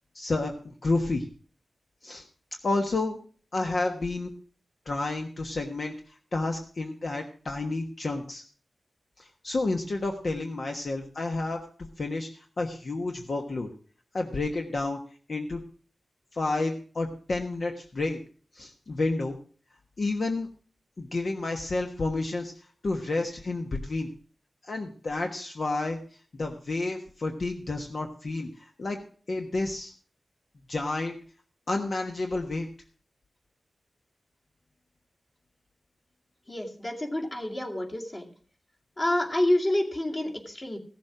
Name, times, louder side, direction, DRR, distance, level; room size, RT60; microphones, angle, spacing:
voice 1, 0.1-1.2 2.0-2.2 2.6-3.2 3.5-4.3 4.8-8.4 9.2-11.6 12.0-13.7 14.1-15.0 15.3-15.6 16.3-18.2 18.5-19.4 20.0-20.5 21.0-22.5 22.8-24.1 24.6-26.0 26.3-29.0 29.3-29.9 30.7-31.1 31.7-32.7, left 2 dB, 55° left, 3 dB, 1.3 m, -30 dB
voice 2, 36.5-38.3 39.0-40.8, left 1 dB, 30° left, 1 dB, 2.4 m, -28 dB
15.5 x 7.5 x 5.9 m, 0.42 s
wide cardioid pair, 105°, 0 cm